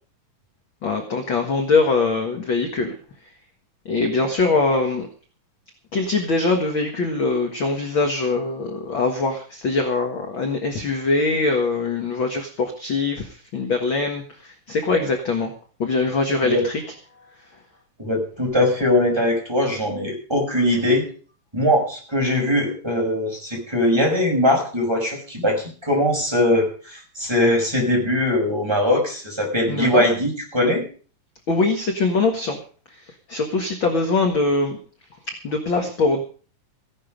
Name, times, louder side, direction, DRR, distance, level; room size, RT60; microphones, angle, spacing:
voice 1, 0.8-2.9 3.9-5.1 5.9-13.3 13.5-14.2 14.7-15.5 15.8-16.8 29.7-30.0 31.5-32.6 33.3-34.8 35.4-36.2, left 3 dB, 45° left, 4 dB, 2.0 m, -22 dB
voice 2, 18.0-21.0 21.5-30.8, left 1 dB, 5° right, -1 dB, 5.6 m, -21 dB
16.0 x 11.5 x 5.3 m, 0.41 s
omnidirectional pair, 3.6 m